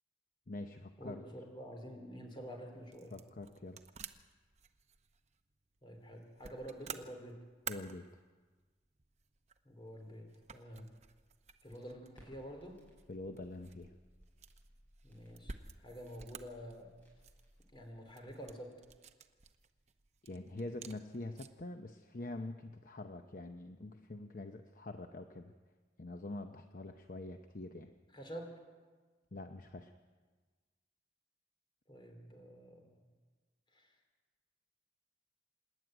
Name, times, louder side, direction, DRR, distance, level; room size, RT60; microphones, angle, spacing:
voice 1, 0.5-1.2 3.1-3.8 7.7-8.1 13.1-13.9 20.2-25.5 26.0-27.9 29.3-29.9, left 2 dB, 45° left, 6 dB, 0.8 m, -45 dB
voice 2, 1.0-3.1 5.8-7.4 9.7-10.9 11.6-12.8 15.0-16.9 17.7-18.8 28.1-28.6 31.9-33.0 33.7-33.9, equal, 25° left, 3 dB, 3.5 m, -48 dB
sound 1, 2.2-21.7, right 6 dB, 35° right, 0.8 m, -53 dB
Crackle, 12.1-17.9, equal, 10° left, 6.2 m, -64 dB
26.5 x 11.0 x 9.1 m, 1.4 s
head